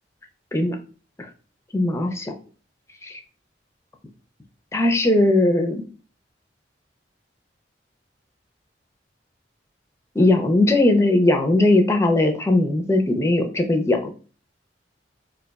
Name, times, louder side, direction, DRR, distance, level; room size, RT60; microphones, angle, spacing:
voice 1, 1.7-2.3 3.0-3.2 4.7-5.8 10.1-14.1, left 2 dB, 15° left, 4 dB, 0.5 m, -19 dB
2.6 x 2.2 x 3.9 m, 0.38 s
head